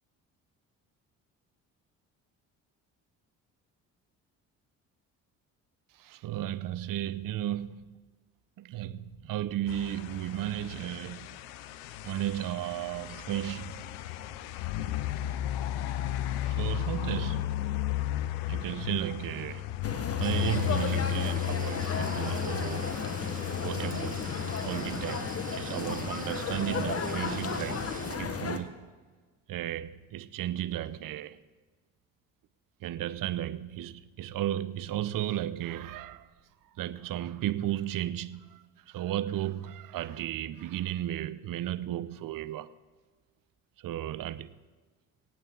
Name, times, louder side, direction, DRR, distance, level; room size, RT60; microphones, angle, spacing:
voice 1, 5.9-8.0 8.6-11.3 12.0-13.8 16.4-17.6 18.5-19.7 20.2-23.0 23.6-24.3 24.6-27.9 28.2-28.9 29.5-31.4 32.8-36.3 36.8-42.7 43.8-44.5, right 12 dB, 55° right, 0.8 m, -34 dB
sound 1, 9.7-25.4, left 13 dB, 80° left, 0.7 m, -34 dB
sound 2, 19.8-28.6, left 5 dB, 35° left, 1.4 m, -34 dB
sound 3, 20.2-28.2, right 4 dB, 20° right, 1.1 m, -45 dB
24.5 x 8.7 x 3.9 m
hypercardioid pair, 60°, 39 cm